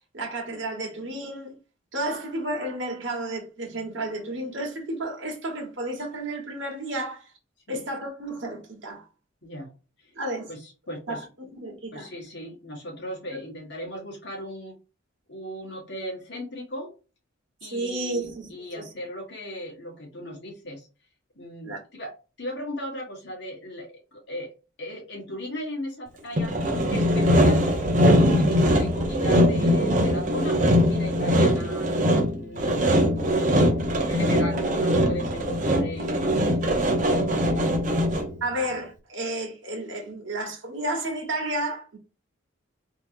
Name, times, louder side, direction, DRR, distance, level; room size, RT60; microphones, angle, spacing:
voice 1, 0.1-1.5 1.9-7.3 7.7-9.0 10.1-10.5 11.1-12.1 13.3-13.4 17.7-18.5 18.7-18.9 21.6-21.8 34.5-34.6 38.4-42.0, right 1 dB, 65° right, 1.3 m, -32 dB
voice 2, 9.4-9.7 10.0-10.1 10.5-11.3 11.9-14.7 15.3-16.9 17.6-20.9 21.4-24.5 24.8-27.8 28.2-31.9 32.3-37.8, equal, 55° left, 1.6 m, -37 dB
Sawing, 26.4-38.4, equal, 40° right, 0.7 m, -21 dB
3.5 x 2.9 x 2.6 m
head